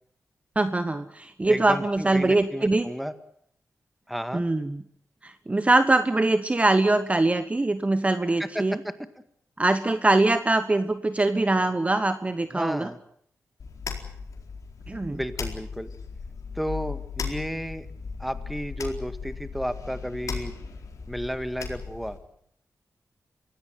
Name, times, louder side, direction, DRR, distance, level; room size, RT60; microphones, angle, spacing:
voice 1, 0.5-2.9 4.3-4.8 5.2-8.8 9.6-12.9 14.9-15.2, right 2 dB, 25° right, 10 dB, 1.2 m, -23 dB
voice 2, 1.5-3.1 4.1-4.4 8.4-8.9 12.5-13.0 15.1-15.9 16.6-17.9 18.2-20.5 21.1-22.2, equal, ahead, 10 dB, 1.8 m, -32 dB
sound 1, 13.6-22.2, left 5 dB, 75° left, 4.4 m, -37 dB
24.0 x 17.0 x 9.3 m, 0.69 s
wide cardioid pair, 95°, 6 cm